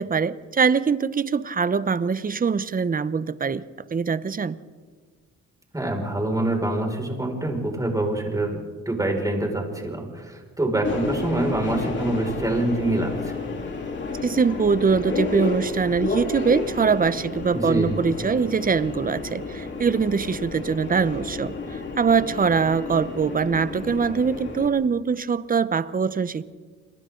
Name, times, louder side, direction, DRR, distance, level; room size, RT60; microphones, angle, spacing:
voice 1, 0.0-3.6 3.9-4.6 14.2-26.4, right 5 dB, 30° right, 16 dB, 0.8 m, -23 dB
voice 2, 5.7-8.6 8.9-13.5 17.5-17.9, right 1 dB, 10° right, 1 dB, 5.7 m, -25 dB
Subway metro underground, 10.8-24.7, left 3 dB, 40° left, 3.7 m, -31 dB
30.0 x 22.5 x 3.9 m, 1.5 s
cardioid pair, 90°, 30 cm